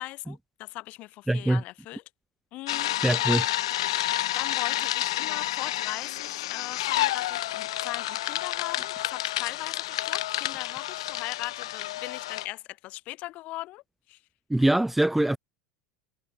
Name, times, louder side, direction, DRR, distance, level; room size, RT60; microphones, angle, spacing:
voice 1, 0.0-2.0 2.5-3.0 3.7-13.8 14.1-14.2, left 18 dB, 50° left, 1.9 m, -39 dB
voice 2, 1.3-1.6 3.0-3.4 14.5-15.4, right 1 dB, 5° right, 0.4 m, -23 dB
sound 1, 2.7-12.5, left 14 dB, 75° left, 1.2 m, -29 dB
hypercardioid pair, 90°, 3 cm